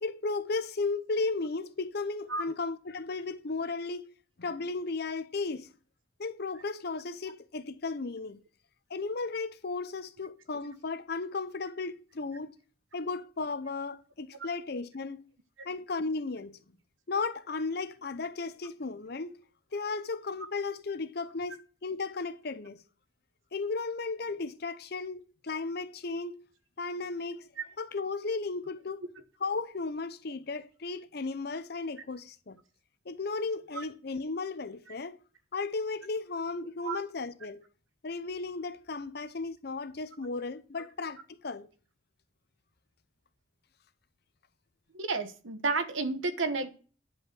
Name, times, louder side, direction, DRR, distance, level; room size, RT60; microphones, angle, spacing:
voice 1, 0.0-4.1 4.4-5.7 6.2-8.4 8.9-12.5 12.9-15.3 15.6-16.6 17.1-19.4 19.7-22.8 23.5-26.4 26.8-27.5 27.8-29.1 29.4-32.6 33.1-35.2 35.5-37.6 38.0-41.7, left 3 dB, 55° left, 0.7 m, -35 dB
voice 2, 44.9-46.8, right 3 dB, 85° right, 1.0 m, -31 dB
9.6 x 5.4 x 6.0 m
head